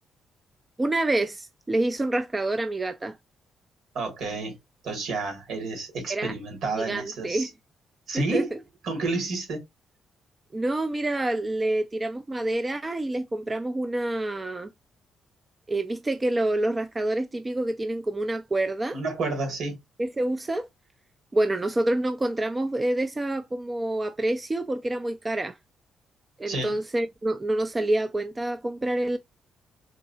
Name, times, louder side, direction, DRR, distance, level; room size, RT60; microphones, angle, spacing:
voice 1, 0.8-3.2 6.1-6.3 6.8-7.5 8.1-8.4 10.5-14.7 15.7-19.0 20.0-20.7 21.3-25.6 26.4-29.2, right 1 dB, 15° right, 0.3 m, -27 dB
voice 2, 3.9-4.6 4.8-7.5 8.1-8.5 8.8-9.6 18.9-19.8 26.5-26.7, right 3 dB, 70° right, 2.1 m, -30 dB
3.8 x 3.1 x 2.7 m
cardioid pair, 145°, 0 cm